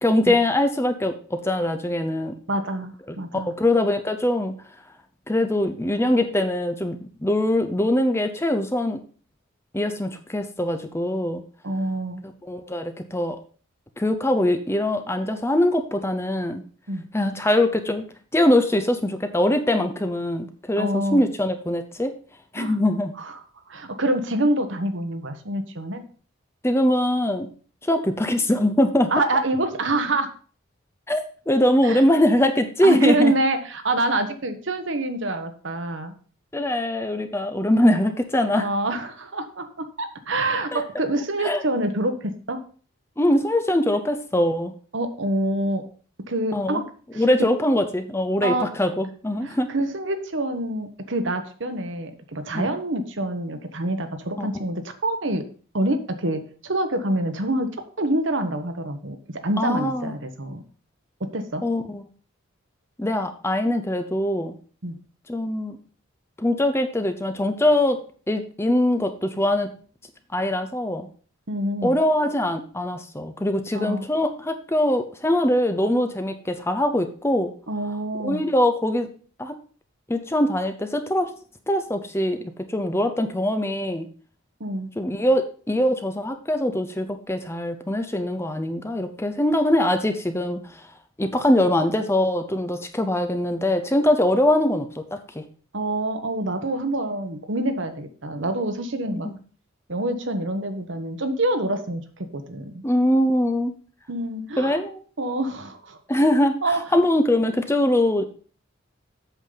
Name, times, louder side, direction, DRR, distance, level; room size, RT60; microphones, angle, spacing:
voice 1, 0.0-2.3 3.1-4.6 5.3-9.0 9.7-11.4 12.4-13.4 14.0-16.6 17.1-18.0 18.3-22.1 22.5-23.1 26.6-27.5 27.8-29.1 31.1-33.3 36.5-38.7 40.7-40.8 41.4-41.6 43.2-44.7 46.5-46.8 47.1-49.7 52.5-52.7 54.4-54.5 59.6-60.1 61.6-62.0 63.0-64.6 65.3-65.8 66.4-68.0 68.3-69.7 70.3-71.1 71.8-77.5 78.2-79.1 79.4-79.6 80.1-81.3 81.7-84.1 85.0-90.9 91.2-95.4 99.1-99.4 102.8-103.7 104.6-105.0 106.1-108.2, left 1 dB, 10° left, 8 dB, 0.6 m, -22 dB
voice 2, 2.5-3.5 11.6-12.2 16.9-17.1 20.8-21.2 22.6-22.8 23.2-23.3 23.7-26.0 29.1-30.3 31.8-32.0 32.8-36.1 38.5-42.6 44.9-45.8 46.3-46.8 47.1-47.2 48.4-48.7 49.4-55.4 55.7-57.7 58.0-59.2 59.4-60.6 61.2-61.6 64.8-65.0 71.5-72.0 73.7-74.0 77.7-78.4 84.6-84.9 95.7-99.3 99.9-102.0 102.3-102.8 104.1-104.8 105.2-106.0 106.6-106.8, right 1 dB, 60° right, 8 dB, 1.1 m, -26 dB
8.2 x 7.1 x 3.9 m, 0.41 s
head